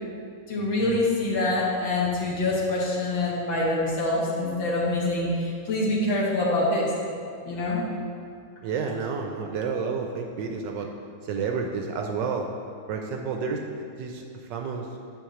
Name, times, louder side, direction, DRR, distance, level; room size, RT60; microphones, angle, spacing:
voice 1, 0.5-6.9 7.5-7.9, left 2 dB, 65° left, -4 dB, 1.9 m, -25 dB
voice 2, 8.6-10.9 11.2-12.5 12.9-13.6 14.0-14.9, right 5 dB, 75° right, 3 dB, 1.1 m, -30 dB
9.2 x 6.9 x 3.1 m, 2.3 s
omnidirectional pair, 2.3 m